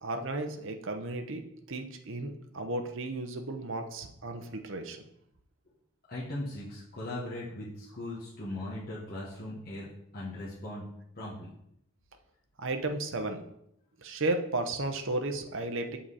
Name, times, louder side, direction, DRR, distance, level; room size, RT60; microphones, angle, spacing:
voice 1, 0.0-5.0 12.6-13.4 14.0-16.0, right 2 dB, 55° right, 5 dB, 0.8 m, -34 dB
voice 2, 6.1-10.8 11.1-11.5, left 1 dB, 40° left, -8 dB, 1.5 m, -39 dB
7.3 x 5.8 x 4.1 m, 0.76 s
head